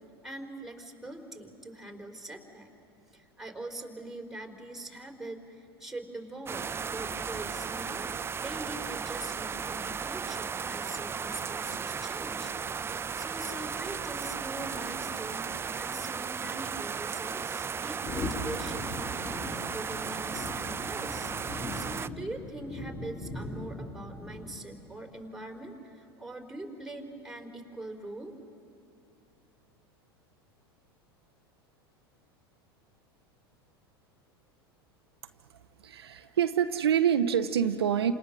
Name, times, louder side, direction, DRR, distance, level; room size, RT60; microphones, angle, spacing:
voice 1, 0.2-2.7 3.1-12.5 12.9-21.3 21.7-28.3, right 1 dB, 5° right, 3 dB, 3.5 m, -43 dB
sound 1, 6.5-22.1, right 6 dB, 20° right, 0.5 m, -35 dB
sound 2, 18.0-24.8, left 2 dB, 20° left, 3.0 m, -39 dB
voice 2, 35.5-38.1, right 9 dB, 80° right, 8 dB, 0.9 m, -27 dB
29.0 x 27.0 x 6.4 m, 2.6 s
hypercardioid pair, 85°, 13 cm